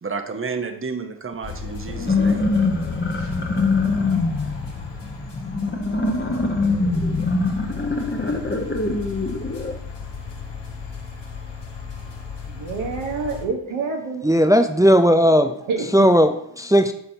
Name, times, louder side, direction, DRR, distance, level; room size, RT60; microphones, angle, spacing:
voice 1, 0.0-2.5, right 4 dB, 25° right, 6 dB, 1.0 m, -31 dB
sound 1, 1.4-13.5, left 5 dB, 60° left, 1.5 m, -35 dB
sound 2, 1.9-9.7, left 3 dB, 20° left, 1.2 m, -23 dB
voice 2, 12.5-14.3 15.3-16.1, right 4 dB, 75° right, 1 dB, 1.4 m, -28 dB
voice 3, 14.2-15.5 15.9-16.9, equal, 5° right, 8 dB, 0.5 m, -16 dB
12.0 x 4.1 x 2.8 m, 0.74 s
supercardioid pair, 40°, 49 cm